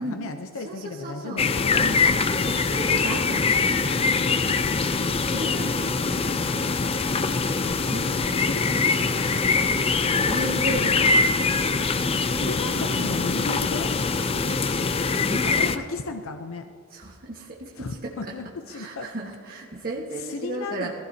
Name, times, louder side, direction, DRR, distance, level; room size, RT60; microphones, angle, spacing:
voice 1, 0.0-2.6 4.1-4.4 8.4-9.2 12.3-13.9 15.4-16.7 17.8-19.1 19.8-19.9 20.2-20.9, left 3 dB, 70° left, 6 dB, 0.6 m, -35 dB
voice 2, 0.6-1.4 1.8-2.2 2.5-3.5 4.4-5.9 7.8-8.8 9.7-10.0 10.3-11.2 12.7-13.1 15.1-15.5 16.9-18.3 18.7-20.9, right 1 dB, 45° right, -4 dB, 1.5 m, -34 dB
sound 1, 1.4-15.8, left 4 dB, 25° left, 0.5 m, -23 dB
sound 2, 6.1-12.7, equal, 5° left, 2.2 m, -43 dB
21.0 x 16.0 x 2.8 m, 2.3 s
head